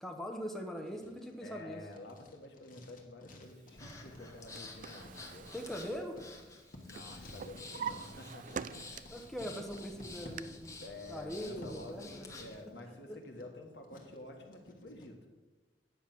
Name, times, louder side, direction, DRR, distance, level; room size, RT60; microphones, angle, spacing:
voice 1, 0.0-1.8 5.5-6.2 9.1-10.8 11.1-12.3 12.9-13.2, equal, ahead, 2 dB, 0.8 m, -41 dB
Writing, 0.7-15.1, left 1 dB, 50° left, 1.5 m, -56 dB
voice 2, 1.4-5.5 6.9-9.2 10.8-15.3, left 2 dB, 75° left, 3 dB, 1.6 m, -49 dB
Breathing, 3.8-12.6, left 3 dB, 20° left, 1.2 m, -51 dB
Drawer open or close, 4.2-6.7 7.0-9.3 9.7-10.4, right 7 dB, 45° right, 0.3 m, -45 dB
9.4 x 7.2 x 6.0 m, 1.2 s
head